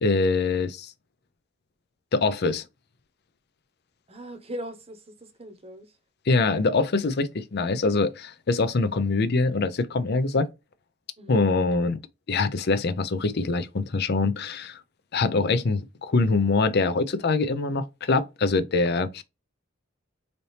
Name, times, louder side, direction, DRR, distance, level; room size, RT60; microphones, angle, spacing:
voice 1, 0.0-0.9 2.1-2.6 6.3-10.5 11.3-12.0 12.3-14.8 15.1-19.2, left 3 dB, 55° left, 0.5 m, -24 dB
voice 2, 4.1-6.0 11.2-11.4, equal, 30° right, 0.8 m, -40 dB
4.1 x 2.8 x 3.2 m
head